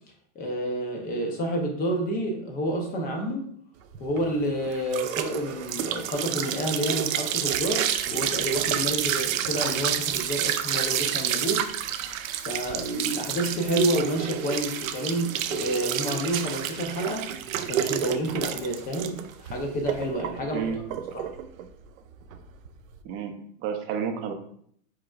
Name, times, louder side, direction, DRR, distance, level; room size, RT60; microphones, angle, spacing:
voice 1, 0.3-3.4 4.0-11.7 12.5-17.3 17.7-20.7 21.1-21.3, right 1 dB, 20° left, 1 dB, 0.8 m, -29 dB
sound 1, 3.9-23.0, right 10 dB, 80° right, 0.6 m, -29 dB
voice 2, 23.6-24.3, right 7 dB, 35° right, 4 dB, 0.7 m, -30 dB
4.8 x 4.3 x 2.5 m, 0.63 s
supercardioid pair, 145°, 40 cm